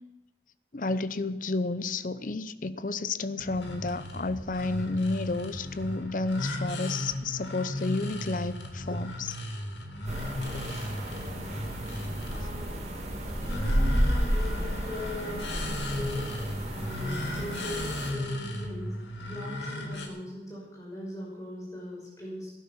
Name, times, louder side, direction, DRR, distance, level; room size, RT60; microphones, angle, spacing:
voice 1, 0.7-9.4, left 3 dB, 45° left, 14 dB, 0.7 m, -31 dB
sound 1, 3.4-20.1, left 1 dB, 85° left, 2.3 m, -36 dB
sound 2, 10.1-18.1, equal, 40° right, 2.5 m, -31 dB
voice 2, 12.3-12.8 13.4-16.3 16.7-18.9 19.2-22.5, left 1 dB, 20° left, -5 dB, 5.6 m, -40 dB
17.0 x 11.0 x 6.1 m, 0.99 s
head